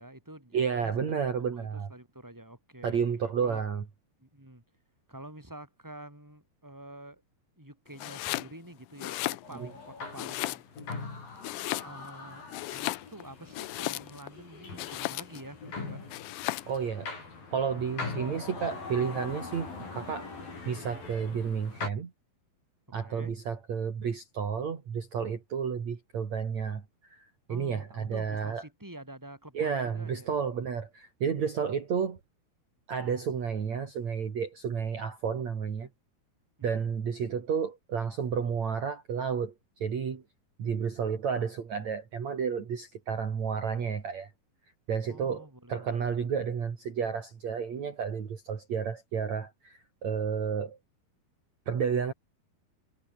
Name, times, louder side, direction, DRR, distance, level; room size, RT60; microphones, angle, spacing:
voice 1, 0.0-0.9 1.5-3.0 3.4-3.6 4.2-4.6 5.1-7.2 7.6-10.6 11.8-16.1 23.0-23.3 27.5-30.3 36.7-36.9 45.1-46.3, right 1 dB, 5° right, 6.7 m, -48 dB
voice 2, 0.5-1.9 2.8-3.8 9.6-9.7 16.7-17.1 17.5-20.3 20.7-22.1 22.9-26.8 27.1-28.6 29.5-32.2 32.9-35.9 36.6-39.5 39.8-40.2 40.6-44.3 44.9-50.8 51.7-52.1, right 6 dB, 45° right, 3.8 m, -31 dB
Domestic sounds home sounds, 8.0-8.5 8.9-9.8 10.2-10.9 11.4-12.2 12.5-14.3 14.8-15.5 16.1-16.8, left 18 dB, 85° left, 1.8 m, -35 dB
sound 1, 9.4-21.9, left 4 dB, 60° left, 9.6 m, -42 dB
omnidirectional pair, 4.5 m